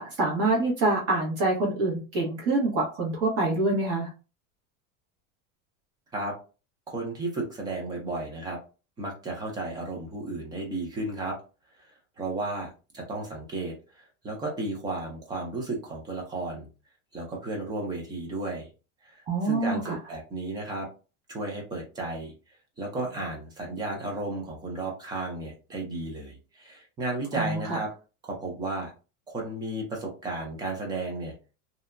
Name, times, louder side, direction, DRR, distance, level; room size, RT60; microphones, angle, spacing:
voice 1, 0.0-4.1 19.3-19.9 27.3-27.8, right 2 dB, 35° right, -3 dB, 1.2 m, -26 dB
voice 2, 6.9-8.6 9.0-11.4 12.2-16.7 17.1-18.7 19.0-20.9 21.3-22.3 22.8-27.9 28.2-28.9 29.3-31.3, right 2 dB, 10° right, 0 dB, 0.3 m, -33 dB
2.7 x 2.2 x 2.4 m, 0.33 s
supercardioid pair, 155°, 39 cm